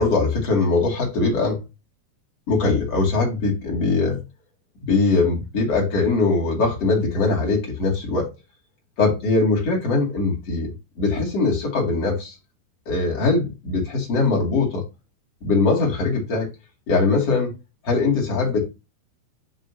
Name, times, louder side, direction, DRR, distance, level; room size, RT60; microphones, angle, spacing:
voice 1, 0.0-1.6 2.5-4.2 4.8-8.3 9.0-10.7 11.0-12.4 12.9-14.8 15.4-16.5 16.9-17.5 17.8-18.6, left 3 dB, 40° left, 2.8 m, -21 dB
10.5 x 3.6 x 2.8 m
omnidirectional pair, 5.2 m